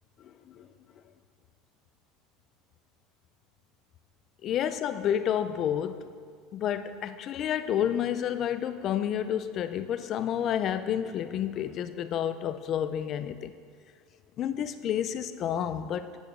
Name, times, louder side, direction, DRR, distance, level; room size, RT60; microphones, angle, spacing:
voice 1, 4.4-6.1 6.5-13.5 14.4-16.2, left 9 dB, 30° left, 11 dB, 0.3 m, -30 dB
8.5 x 6.5 x 5.1 m, 2.1 s
cardioid pair, 180°, 0 cm